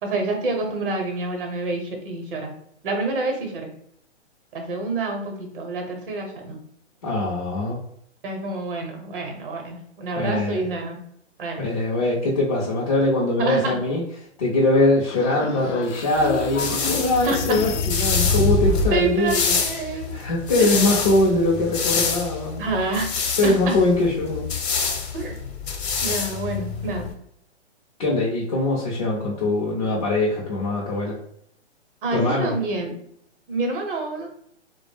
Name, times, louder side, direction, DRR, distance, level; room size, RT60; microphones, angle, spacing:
voice 1, 0.0-2.5 2.8-3.7 4.5-6.6 8.2-11.0 11.4-11.6 13.4-13.8 16.8-17.6 18.9-20.2 20.6-21.0 22.6-23.1 23.4-23.7 25.1-25.4 26.0-27.1 32.0-33.0 33.5-34.3, right 3 dB, 50° right, 3 dB, 0.8 m, -28 dB
voice 2, 7.0-7.8 10.1-10.6 11.6-14.0 14.4-19.5 20.1-22.7 23.4-24.5 28.0-31.2 32.1-32.5, left 2 dB, 30° left, -5 dB, 0.4 m, -22 dB
sound 1, 15.1-19.1, left 3 dB, 90° left, 0.5 m, -26 dB
sound 2, 16.2-27.1, left 5 dB, 60° left, 0.7 m, -27 dB
2.2 x 2.0 x 3.2 m, 0.69 s
hypercardioid pair, 155°, 35 cm